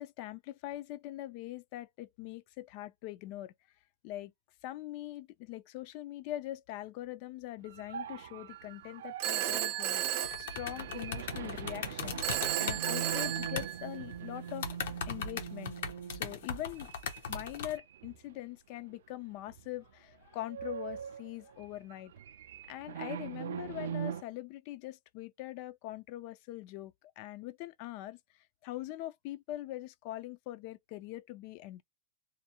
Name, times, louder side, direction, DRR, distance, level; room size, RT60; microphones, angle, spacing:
voice 1, 0.0-3.5 4.0-4.3 4.6-12.2 12.6-14.7 15.1-15.8 16.1-16.9 17.3-22.1 22.7-28.2 28.6-31.8, left 15 dB, 40° left, 0.3 m, -42 dB
sound 1, 7.6-18.3 18.7-18.9 19.5-19.9 20.1-24.2, right 8 dB, 90° right, 0.3 m, -42 dB
Telephone, 9.2-11.2 12.2-14.1, right 12 dB, 40° right, 0.5 m, -34 dB
sound 2, 10.2-13.7 14.1-14.2 14.5-17.8, left 6 dB, 70° left, 0.7 m, -39 dB
2.6 x 2.0 x 2.8 m
supercardioid pair, 170°, 0 cm